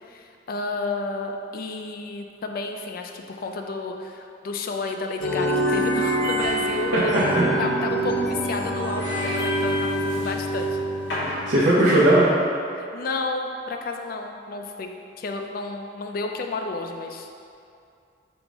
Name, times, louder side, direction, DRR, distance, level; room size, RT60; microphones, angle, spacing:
voice 1, 0.0-7.2 7.6-10.7 12.8-17.3, left 3 dB, 50° left, 4 dB, 0.3 m, -31 dB
sound 1, 5.2-11.6, right 1 dB, 75° left, 0.9 m, -25 dB
voice 2, 9.0-9.4 11.3-12.3, right 1 dB, 65° right, -10 dB, 0.7 m, -19 dB
5.1 x 2.1 x 4.6 m, 2.5 s
head